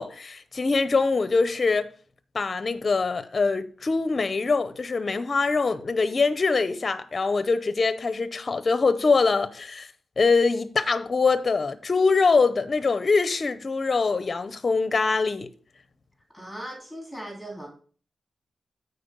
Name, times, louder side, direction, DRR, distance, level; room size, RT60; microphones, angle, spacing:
voice 1, 0.0-1.9 2.3-9.9 10.2-15.5, left 4 dB, 35° left, 0.7 m, -23 dB
voice 2, 16.3-17.7, right 1 dB, ahead, 3.1 m, -38 dB
9.2 x 4.4 x 6.8 m
wide cardioid pair, 165°, 0 cm